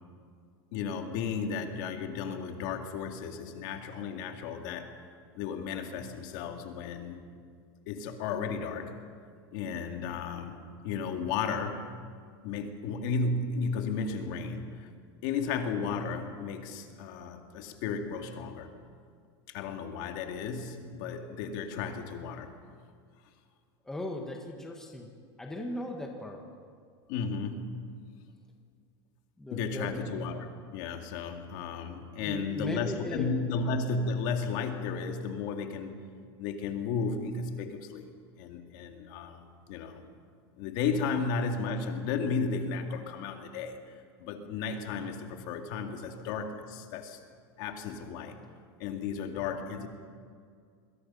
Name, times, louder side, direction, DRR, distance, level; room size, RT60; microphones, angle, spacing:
voice 1, 0.7-4.9 5.3-7.2 7.9-8.9 9.5-11.8 12.4-14.9 15.2-18.7 19.5-22.5 27.1-27.8 29.5-36.0 36.4-38.0 38.4-40.0 40.6-43.8 44.2-47.2 47.6-48.4 48.8-49.9, left 5 dB, 45° left, 4 dB, 2.3 m, -34 dB
voice 2, 23.8-25.1 25.4-26.4 29.4-30.3 32.2-33.3, left 1 dB, 5° left, 1 dB, 1.5 m, -38 dB
28.5 x 22.0 x 5.7 m, 2.1 s
supercardioid pair, 175°, 13 cm